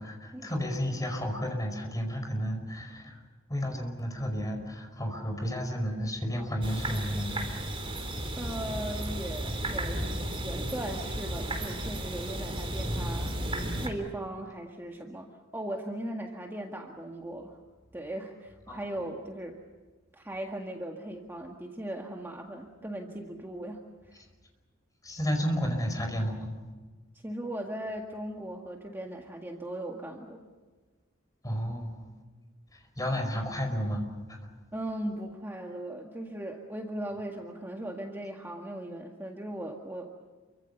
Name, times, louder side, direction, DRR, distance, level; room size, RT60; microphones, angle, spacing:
voice 1, 0.0-3.2 3.5-7.5 18.7-18.8 25.0-26.5 31.4-32.1 33.0-34.0 34.3-34.4, equal, 20° left, 4 dB, 5.2 m, -32 dB
sound 1, 6.6-13.9, right 1 dB, 25° right, 3.7 m, -34 dB
voice 2, 8.4-10.1 10.4-13.3 13.8-15.3 15.5-17.6 17.9-19.6 20.1-24.2 27.2-30.4 34.7-40.1, right 1 dB, 10° right, 1 dB, 1.9 m, -38 dB
29.0 x 24.5 x 6.9 m, 1.3 s
head